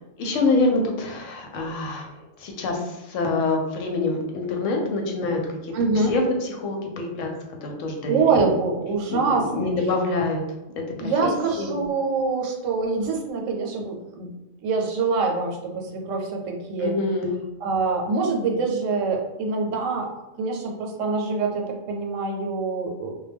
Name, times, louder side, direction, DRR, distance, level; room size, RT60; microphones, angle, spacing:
voice 1, 0.2-2.1 2.4-5.7 6.1-7.3 7.6-8.4 9.1-10.4 10.7-11.7 16.8-17.4, left 3 dB, 90° left, 2 dB, 1.0 m, -26 dB
voice 2, 5.7-6.1 8.1-9.7 11.0-14.3 14.6-16.9 17.6-20.1 20.4-23.2, right 4 dB, 85° right, 1 dB, 1.0 m, -25 dB
2.2 x 2.1 x 3.3 m, 1.0 s
omnidirectional pair, 1.3 m